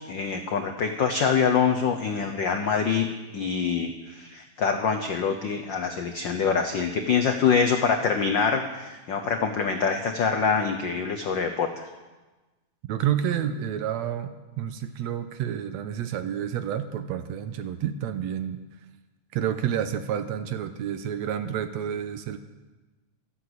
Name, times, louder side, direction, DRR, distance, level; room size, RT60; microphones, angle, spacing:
voice 1, 0.1-3.1 3.3-11.7, left 6 dB, 85° left, 5 dB, 1.0 m, -25 dB
voice 2, 12.9-18.6 19.3-22.4, right 9 dB, 75° right, 10 dB, 1.9 m, -29 dB
14.0 x 12.5 x 7.9 m, 1.2 s
omnidirectional pair, 3.4 m